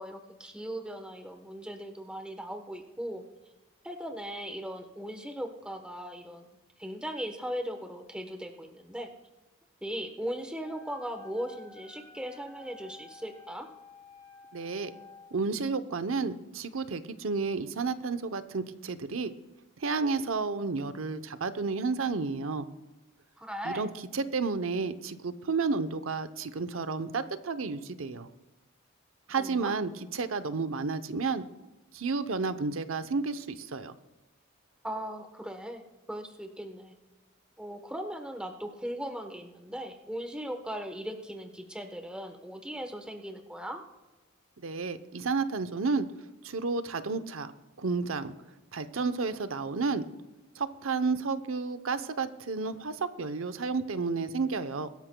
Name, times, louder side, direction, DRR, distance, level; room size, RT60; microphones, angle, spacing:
voice 1, 0.0-3.2 3.8-6.5 6.8-9.1 9.8-13.7 23.4-23.9 29.3-29.8 34.8-35.8 36.1-36.9 37.6-43.8, equal, 5° right, 5 dB, 1.1 m, -38 dB
Wind instrument woodwind instrument, 10.6-15.4, left 3 dB, 20° left, 2.6 m, -52 dB
voice 2, 14.5-14.9 15.3-19.3 19.8-22.7 23.6-28.3 29.3-31.5 31.9-33.9 44.6-46.1 46.4-47.5 47.8-48.3 48.7-50.0 50.6-54.9, right 4 dB, 80° right, 11 dB, 0.8 m, -31 dB
22.0 x 13.0 x 2.3 m, 1.1 s
head